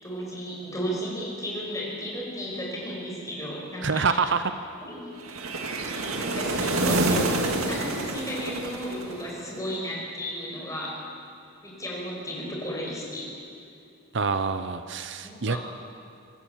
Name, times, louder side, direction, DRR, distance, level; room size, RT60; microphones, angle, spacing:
voice 1, 0.0-4.2 4.8-5.1 6.2-11.0 11.6-13.3 15.2-15.6, equal, 15° left, -3 dB, 5.6 m, -34 dB
voice 2, 3.8-4.4 14.1-15.6, right 5 dB, 55° right, 10 dB, 0.8 m, -26 dB
sound 1, 5.3-9.5, right 2 dB, 85° right, 1.9 m, -27 dB
25.5 x 16.0 x 7.4 m, 2.6 s
head